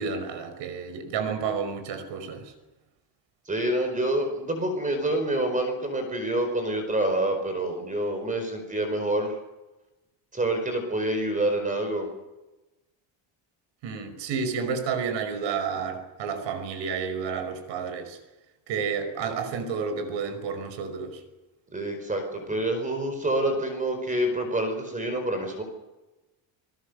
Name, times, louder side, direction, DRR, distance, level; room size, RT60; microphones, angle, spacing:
voice 1, 0.0-2.5 13.8-18.2 18.7-21.2, right 6 dB, 70° right, 10 dB, 5.5 m, -31 dB
voice 2, 3.5-9.3 10.3-12.1 21.7-25.6, right 1 dB, 15° right, 6 dB, 4.7 m, -27 dB
29.5 x 19.5 x 6.8 m, 1.0 s
cardioid pair, 160°, 46 cm